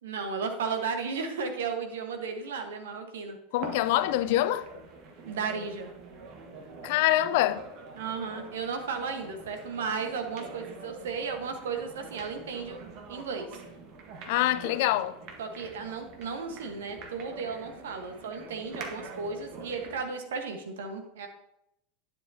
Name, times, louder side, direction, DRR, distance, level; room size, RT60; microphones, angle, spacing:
voice 1, 0.0-3.4 5.2-5.9 8.0-12.8 13.1-13.5 15.4-21.3, right 5 dB, 70° right, 1.3 m, -34 dB
voice 2, 3.5-4.7 6.8-7.6 14.3-15.2, left 14 dB, 60° left, 0.5 m, -25 dB
sound 1, 3.6-20.1, right 3 dB, 50° right, 1.5 m, -45 dB
11.0 x 7.5 x 2.8 m
figure-of-eight pair, 85°, 0 cm